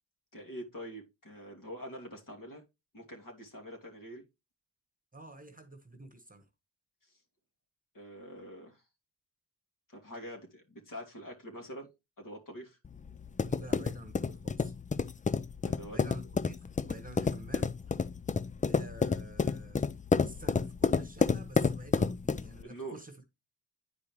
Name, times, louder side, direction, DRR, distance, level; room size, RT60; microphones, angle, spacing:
voice 1, 0.3-2.6 2.9-4.2 7.9-8.8 9.9-11.9 12.2-12.8 15.6-16.0 22.6-23.0, equal, 50° left, 2.6 m, -45 dB
voice 2, 5.1-6.5 13.5-14.7 15.9-17.7 18.6-19.9 20.2-23.2, right 2 dB, 20° right, 1.3 m, -49 dB
sound 1, 12.8-22.6, left 5 dB, 20° left, 0.4 m, -30 dB
9.7 x 4.8 x 3.1 m
cardioid pair, 50°, 43 cm